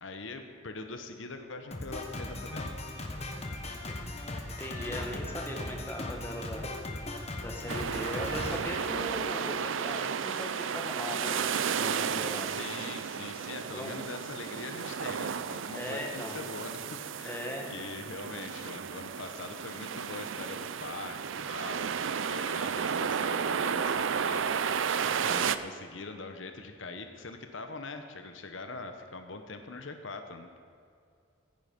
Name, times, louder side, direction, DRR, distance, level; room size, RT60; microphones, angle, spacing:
voice 1, 0.0-2.7 12.4-16.9 17.2-21.9 22.2-30.7, left 3 dB, 75° left, 7 dB, 1.0 m, -43 dB
Drum kit, 1.7-9.5, left 1 dB, 30° left, 1.2 m, -38 dB
voice 2, 4.6-6.8 7.4-12.6 13.7-13.9 15.7-16.4 17.2-17.7, left 1 dB, 10° left, 1 dB, 1.4 m, -39 dB
sound 1, 7.7-25.6, right 7 dB, 75° right, 0.5 m, -33 dB
16.0 x 9.5 x 5.3 m, 2.3 s
head